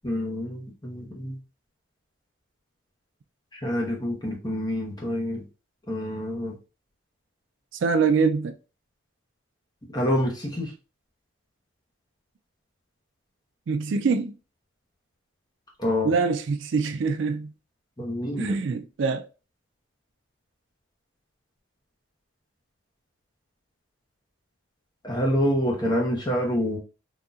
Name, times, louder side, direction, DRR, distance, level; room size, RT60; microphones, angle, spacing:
voice 1, 0.0-1.4 3.5-5.4 5.9-6.6 9.9-10.7 15.8-16.1 18.0-18.5 25.0-26.8, equal, 20° left, 1.0 m, -27 dB
voice 2, 7.7-8.6 13.7-14.3 16.0-17.5 18.4-19.3, right 4 dB, 65° right, 0.4 m, -24 dB
4.0 x 2.8 x 2.4 m
head